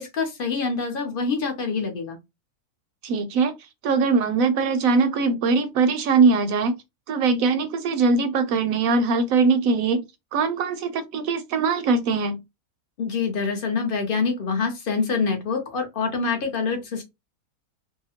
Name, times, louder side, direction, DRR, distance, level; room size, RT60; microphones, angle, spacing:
voice 1, 0.0-2.2 13.0-17.0, left 5 dB, 50° left, 0.7 m, -26 dB
voice 2, 3.0-3.5 3.8-6.8 7.1-10.0 10.3-12.4, right 4 dB, 70° right, 0.9 m, -21 dB
2.7 x 2.1 x 2.7 m
omnidirectional pair, 1.6 m